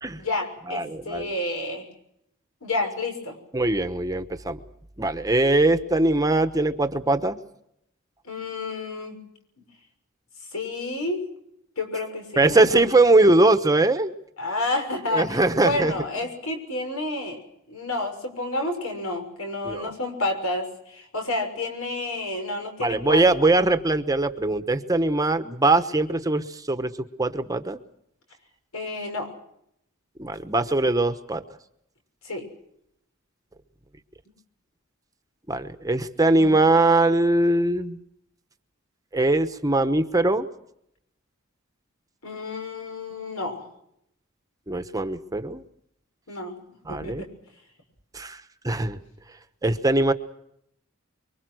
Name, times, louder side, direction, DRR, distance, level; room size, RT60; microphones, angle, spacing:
voice 1, 0.1-1.9 2.6-3.4 8.2-9.2 10.5-11.2 11.8-12.9 14.4-17.4 17.7-23.2 28.7-29.4 32.2-32.5 36.4-36.6 42.2-43.7 46.3-46.6 46.9-47.3, left 2 dB, 90° left, 5 dB, 6.3 m, -30 dB
voice 2, 0.7-1.3 3.5-4.6 5.0-7.4 12.4-14.1 15.1-15.9 19.6-19.9 22.8-26.9 27.2-27.8 30.2-31.4 35.5-38.0 39.1-40.5 44.7-45.6 46.9-47.2 48.1-49.0 49.6-50.1, right 2 dB, 15° right, 9 dB, 1.0 m, -21 dB
25.0 x 23.5 x 6.4 m, 0.77 s
head